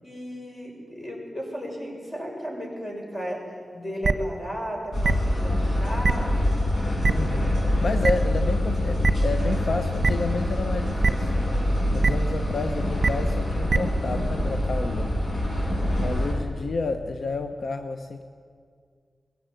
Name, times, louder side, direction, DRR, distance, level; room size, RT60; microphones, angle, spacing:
voice 1, 0.0-3.4 3.7-6.3, equal, 25° left, -1 dB, 7.0 m, -34 dB
sound 1, 4.0-4.1 5.0-5.1 6.0-6.1 7.0-7.1 8.0-8.1 9.0-9.1 10.0-10.1 11.0-11.1 12.0-12.1 13.0-13.1 13.7-13.8, right 4 dB, 50° right, 1.1 m, -20 dB
sound 2, 4.9-16.3, left 1 dB, 55° left, 5.7 m, -25 dB
voice 2, 7.1-11.3 11.9-15.2 16.0-18.2, left 3 dB, 70° left, 7 dB, 1.0 m, -30 dB
20.5 x 17.0 x 9.1 m, 2.1 s
cardioid pair, 70°, 0 cm